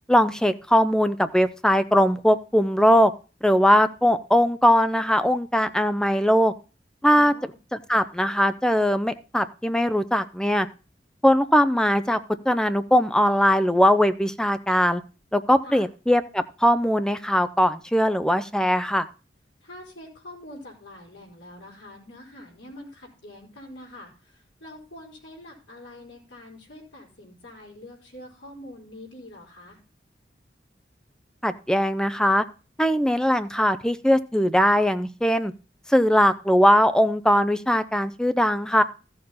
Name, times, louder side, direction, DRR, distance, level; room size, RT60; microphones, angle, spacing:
voice 1, 0.1-3.1 3.4-6.5 7.0-7.3 7.9-10.7 11.2-12.2 12.5-15.0 15.3-19.0 31.4-32.4 32.8-35.5 35.9-38.8, equal, 5° left, 11 dB, 0.6 m, -20 dB
voice 2, 7.1-7.5 15.6-15.9 19.6-29.8, left 1 dB, 80° left, -5 dB, 4.4 m, -45 dB
14.0 x 6.7 x 4.1 m, 0.34 s
head